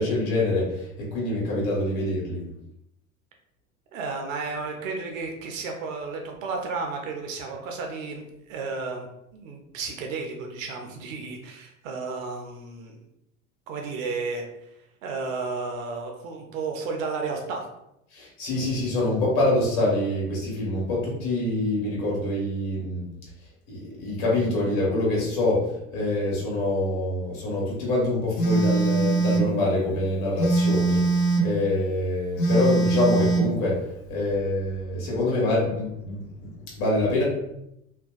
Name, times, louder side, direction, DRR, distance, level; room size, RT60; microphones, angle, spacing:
voice 1, 0.0-2.4 18.1-23.1 23.7-31.0 31.4-33.8 34.1-36.5 36.7-37.2, left 2 dB, 55° left, -4 dB, 1.4 m, -25 dB
voice 2, 3.9-13.0 13.7-14.7 15.0-17.7, right 4 dB, 65° right, 2 dB, 0.6 m, -33 dB
Telephone, 28.4-29.5 30.4-31.5 32.4-33.5, right 3 dB, 75° left, 0.6 m, -22 dB
2.5 x 2.1 x 2.3 m, 0.83 s
figure-of-eight pair, 70°, 42 cm